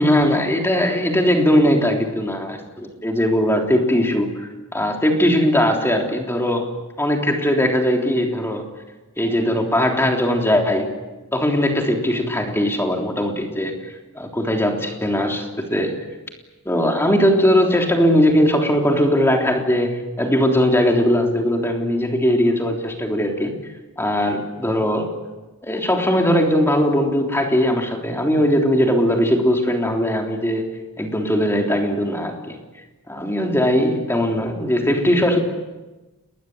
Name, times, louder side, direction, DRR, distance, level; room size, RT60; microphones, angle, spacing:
voice 1, 0.0-8.7 9.2-10.9 11.3-16.0 16.6-23.6 24.0-25.2 25.6-32.6 33.1-35.4, equal, 10° left, 2 dB, 3.4 m, -19 dB
29.5 x 21.0 x 8.0 m, 1.1 s
head